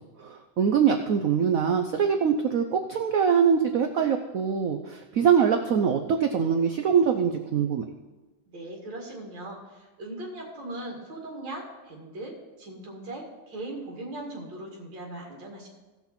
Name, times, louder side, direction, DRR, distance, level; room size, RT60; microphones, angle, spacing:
voice 1, 0.2-7.8, right 7 dB, 80° right, 6 dB, 0.7 m, -23 dB
voice 2, 8.5-15.7, right 1 dB, 60° right, -1 dB, 2.9 m, -39 dB
16.5 x 5.9 x 4.3 m, 1.2 s
omnidirectional pair, 2.2 m